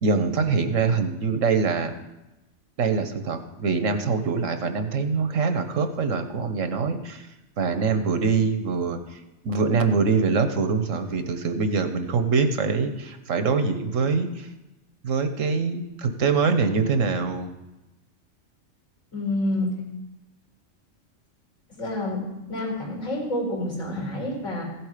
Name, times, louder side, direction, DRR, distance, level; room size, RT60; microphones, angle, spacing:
voice 1, 0.0-1.9 2.8-7.3 7.6-9.2 9.4-14.5 15.0-17.5, right 4 dB, 80° right, 8 dB, 1.4 m, -24 dB
voice 2, 19.1-19.8 21.7-24.6, left 1 dB, 70° left, -3 dB, 4.9 m, -28 dB
15.5 x 7.8 x 5.0 m, 0.98 s
omnidirectional pair, 1.3 m